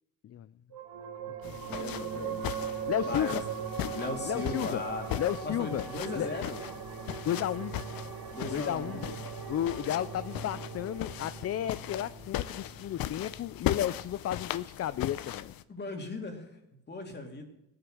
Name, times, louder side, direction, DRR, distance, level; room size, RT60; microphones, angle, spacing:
sound 1, 0.7-13.6, right 7 dB, 65° right, 1.9 m, -40 dB
sound 2, 1.4-15.6, left 13 dB, 70° left, 0.7 m, -39 dB
voice 1, 1.4-2.4 2.9-3.4 4.2-4.8 5.2-5.9 6.1-6.4 7.2-7.7 8.5-9.0 9.5-15.5, left 11 dB, 45° left, 14 dB, 0.4 m, -33 dB
sound 3, 1.7-6.3 6.5-7.9, right 4 dB, 15° right, 0.4 m, -50 dB
voice 2, 3.0-3.4 3.9-5.1 5.4-6.6 8.3-9.1 15.7-16.5 16.9-17.5, left 2 dB, 30° left, 3 dB, 2.5 m, -37 dB
17.5 x 9.6 x 6.4 m, 0.86 s
cardioid pair, 135°, 36 cm